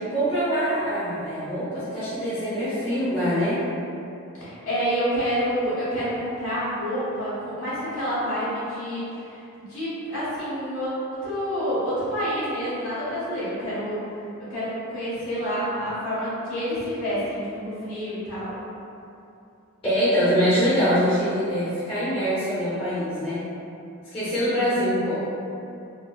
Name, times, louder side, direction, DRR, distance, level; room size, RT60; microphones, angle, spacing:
voice 1, 0.1-3.6 19.8-23.4 24.1-25.2, equal, 25° left, -12 dB, 0.7 m, -24 dB
voice 2, 4.3-14.0 14.5-18.6 24.4-24.6, equal, 70° left, -11 dB, 1.4 m, -28 dB
4.1 x 2.1 x 2.3 m, 2.7 s
head